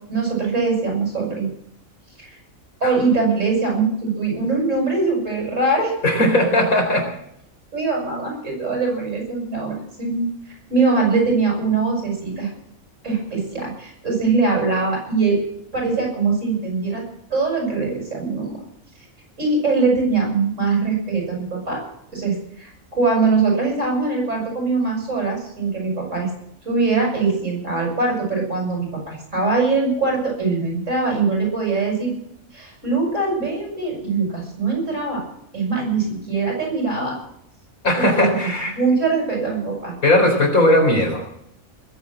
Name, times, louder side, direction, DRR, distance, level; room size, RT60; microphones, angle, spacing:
voice 1, 0.1-1.5 2.2-2.4 2.8-5.9 7.7-10.3 10.7-12.5 13.0-15.4 15.7-17.0 17.3-18.6 19.4-21.8 22.1-26.3 26.6-32.1 32.5-35.2 35.5-37.2 38.0-39.9, right 4 dB, 60° right, -1 dB, 8.0 m, -22 dB
voice 2, 6.0-7.1 37.8-38.7 40.0-41.3, left 1 dB, 75° left, 2 dB, 4.6 m, -18 dB
20.5 x 8.4 x 7.6 m, 0.74 s
omnidirectional pair, 1.5 m